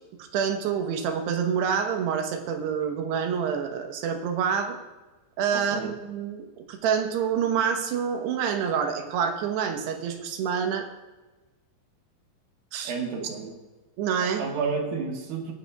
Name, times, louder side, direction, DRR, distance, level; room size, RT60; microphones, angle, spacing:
voice 1, 0.3-4.8 5.4-10.9 12.7-13.3 14.0-14.4, right 7 dB, 90° right, 5 dB, 3.2 m, -27 dB
voice 2, 5.5-5.9 12.8-13.6 14.4-15.5, right 5 dB, 70° right, 1 dB, 3.1 m, -31 dB
21.0 x 9.3 x 2.4 m, 1.2 s
omnidirectional pair, 4.7 m